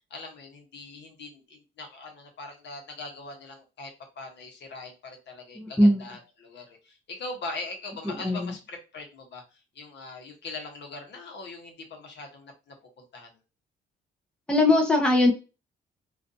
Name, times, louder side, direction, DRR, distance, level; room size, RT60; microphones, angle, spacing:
voice 1, 0.1-13.4, left 3 dB, 60° left, 3 dB, 1.0 m, -41 dB
voice 2, 5.6-6.1 8.0-8.5 14.5-15.3, left 1 dB, 5° left, 2 dB, 0.6 m, -21 dB
2.5 x 2.4 x 2.6 m, 0.30 s
cardioid pair, 90°, 20 cm